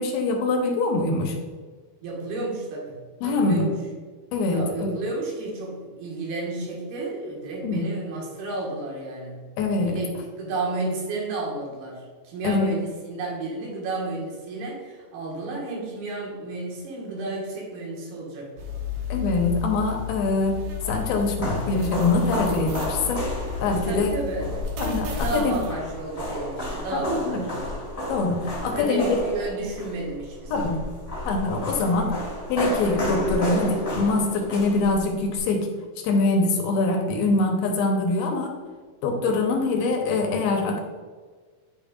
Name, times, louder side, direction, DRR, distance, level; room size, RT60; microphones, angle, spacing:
voice 1, 0.0-1.4 3.2-3.6 4.3-4.9 7.6-7.8 9.6-9.9 12.4-12.7 19.1-20.6 20.9-23.2 23.6-24.1 24.8-25.6 26.9-27.5 28.1-29.2 30.5-30.7 31.3-32.2 32.5-35.7 36.0-38.5 39.0-40.8, left 3 dB, 80° left, 2 dB, 2.7 m, -24 dB
voice 2, 2.0-3.0 3.2-3.7 4.5-9.4 9.8-18.7 23.9-24.5 25.1-27.8 28.6-30.8, right 2 dB, 75° right, -3 dB, 3.5 m, -32 dB
sound 1, 18.6-25.7, left 6 dB, 90° right, 1.5 m, -33 dB
sound 2, 20.4-35.4, left 1 dB, 35° left, 1.2 m, -32 dB
9.2 x 5.3 x 2.5 m, 1.5 s
omnidirectional pair, 4.6 m